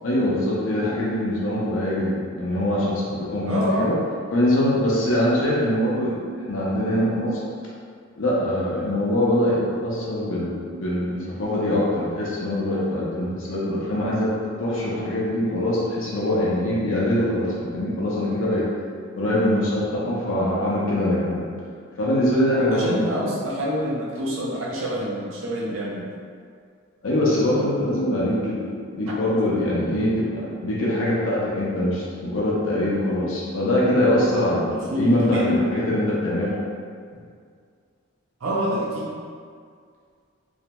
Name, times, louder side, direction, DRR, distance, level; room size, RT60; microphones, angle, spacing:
voice 1, 0.0-4.0 4.3-6.2 6.5-7.4 8.2-14.3 14.6-18.6 19.1-21.5 22.0-23.1 27.0-36.5, left 1 dB, 75° left, -6 dB, 0.5 m, -23 dB
voice 2, 3.5-3.9 22.7-26.0 29.1-29.2 34.7-35.5 38.4-39.1, equal, 85° right, -5 dB, 0.6 m, -26 dB
2.5 x 2.1 x 2.9 m, 2.1 s
head